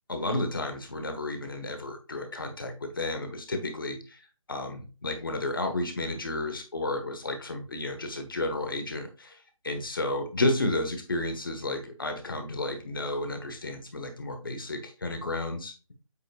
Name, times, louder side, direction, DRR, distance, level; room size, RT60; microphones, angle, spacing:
voice 1, 0.1-4.2 4.5-9.4 9.6-15.9, left 2 dB, 40° left, 6 dB, 1.4 m, -32 dB
8.3 x 5.6 x 2.4 m, 0.35 s
figure-of-eight pair, 180°, 18 cm